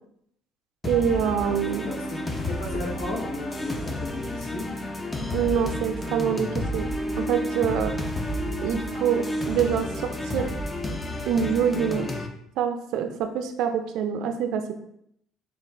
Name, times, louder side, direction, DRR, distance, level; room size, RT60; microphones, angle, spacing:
sound 1, 0.8-12.3, left 1 dB, 10° left, 0.4 m, -31 dB
voice 1, 0.8-1.9 5.3-6.9 7.2-8.0 8.6-10.5 11.3-12.1 12.6-14.7, right 8 dB, 70° right, 7 dB, 0.4 m, -25 dB
voice 2, 1.8-2.2 2.5-4.8, left 2 dB, 80° left, -4 dB, 1.0 m, -35 dB
3.8 x 2.3 x 3.3 m, 0.73 s
cardioid pair, 145°, 0 cm